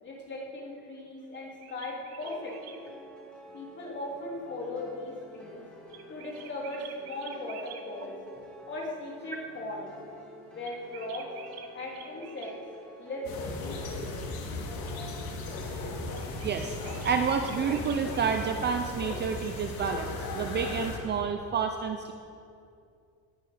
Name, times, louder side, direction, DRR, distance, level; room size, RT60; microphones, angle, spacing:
voice 1, 0.0-2.8 3.5-5.6 6.1-8.1 8.7-9.9 10.5-11.3 11.7-12.5 13.0-13.3 13.6-14.1, left 2 dB, 30° left, -2 dB, 2.9 m, -38 dB
sound 1, 1.3-2.8 5.9-7.8 10.6-12.6 16.1-18.3, right 8 dB, 70° right, 1.3 m, -48 dB
sound 2, 2.2-18.9, equal, ahead, 2.3 m, -49 dB
sound 3, 13.2-21.0, left 2 dB, 65° left, 2.4 m, -36 dB
voice 2, 16.4-16.8 17.0-22.1, right 6 dB, 30° right, 6 dB, 0.5 m, -29 dB
19.5 x 9.0 x 4.9 m, 2.5 s
cardioid pair, 160°, 39 cm